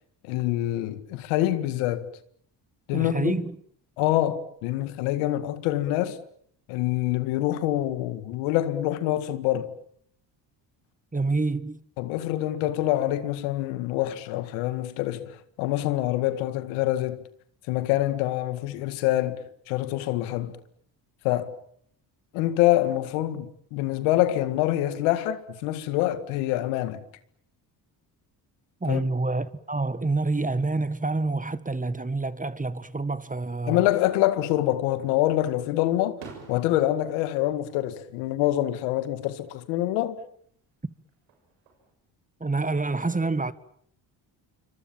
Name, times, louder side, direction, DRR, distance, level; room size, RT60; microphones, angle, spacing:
voice 1, 0.2-2.1 2.9-3.3 4.0-6.2 6.7-9.7 12.0-17.2 17.7-20.6 21.2-21.6 22.3-27.0 28.9-29.0 33.7-36.2 36.5-40.2, left 14 dB, 90° left, 2.0 m, -26 dB
voice 2, 2.9-3.5 11.1-11.8 28.8-33.8 42.4-43.5, right 3 dB, 15° right, 1.7 m, -27 dB
Fireworks, 34.4-35.1 35.5-38.7 39.0-39.6 41.1-41.9, right 5 dB, 90° right, 7.5 m, -50 dB
27.5 x 24.5 x 7.4 m
supercardioid pair, 65°, 48 cm